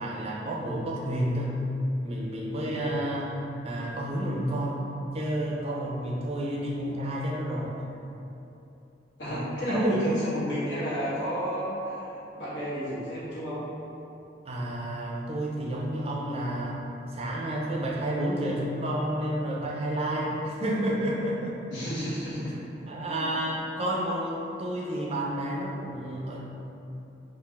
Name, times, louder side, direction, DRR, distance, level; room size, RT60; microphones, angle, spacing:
voice 1, 0.0-1.6 2.0-3.3 3.6-4.8 5.1-7.7 9.3-9.4 9.7-10.0 14.5-16.8 17.1-21.6 22.5-22.6 22.9-26.4, right 1 dB, 35° right, -2 dB, 0.5 m, -30 dB
voice 2, 2.7-3.0 9.2-13.6 21.7-22.6 23.1-23.4, equal, 75° left, -10 dB, 1.4 m, -32 dB
4.4 x 2.4 x 3.4 m, 2.9 s
head